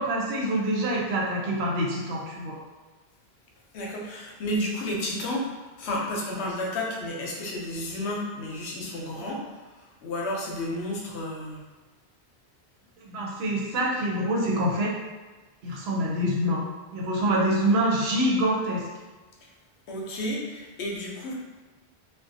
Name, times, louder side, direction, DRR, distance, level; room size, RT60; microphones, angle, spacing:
voice 1, 0.0-2.6 13.0-15.0 15.6-16.6 16.9-18.9, right 1 dB, 75° right, -3 dB, 0.9 m, -26 dB
voice 2, 3.7-5.5 5.8-9.4 10.0-11.6 19.9-21.3, left 1 dB, 85° left, -1 dB, 0.9 m, -31 dB
2.5 x 2.2 x 2.6 m, 1.3 s
omnidirectional pair, 1.1 m